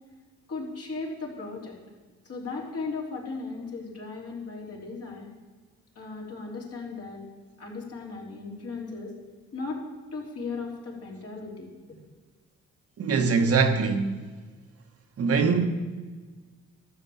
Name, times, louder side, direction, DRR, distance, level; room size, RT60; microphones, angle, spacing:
voice 1, 0.5-1.7 2.3-5.3 6.0-7.2 7.6-9.1 9.5-9.8 10.1-11.7, left 3 dB, 50° left, 3.5 m, -36 dB
voice 2, 13.0-14.2 15.2-15.6, right 5 dB, 50° right, 1.3 m, -22 dB
12.5 x 7.0 x 7.2 m
cardioid pair, 90°, 30 cm